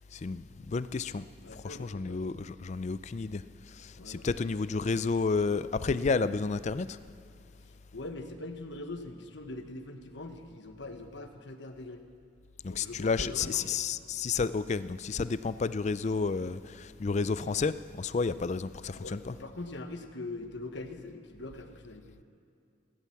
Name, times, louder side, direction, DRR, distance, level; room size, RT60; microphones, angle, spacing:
voice 1, 0.1-1.3 1.5-7.0 12.6-19.3, left 4 dB, 35° left, 0.4 m, -31 dB
voice 2, 1.4-2.3 4.0-4.3 7.9-12.0 12.7-13.8 19.0-22.2, left 2 dB, 60° left, 1.2 m, -42 dB
15.5 x 13.0 x 7.2 m
head